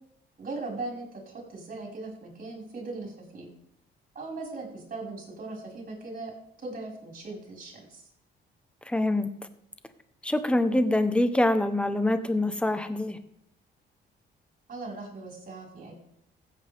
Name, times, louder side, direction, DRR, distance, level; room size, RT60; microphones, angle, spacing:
voice 1, 0.4-3.5 4.2-6.3 6.6-8.0 14.7-15.9, right 3 dB, 45° right, -1 dB, 5.4 m, -39 dB
voice 2, 8.9-9.3 10.2-13.2, left 1 dB, 5° left, 10 dB, 1.1 m, -25 dB
15.5 x 8.4 x 3.6 m, 0.71 s
cardioid pair, 90°, 20 cm